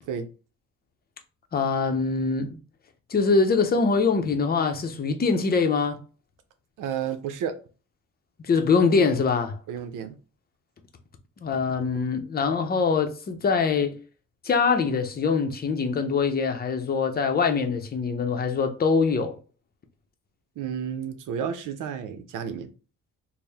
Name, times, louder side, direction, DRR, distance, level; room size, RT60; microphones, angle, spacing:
voice 1, 1.5-2.6 3.1-6.0 8.4-9.6 11.4-14.0 14.4-19.4, left 5 dB, 30° left, 0.6 m, -23 dB
voice 2, 6.8-7.6 9.7-10.2 20.6-22.7, right 8 dB, 85° right, 0.7 m, -31 dB
4.4 x 2.1 x 3.4 m
cardioid pair, 115°, 31 cm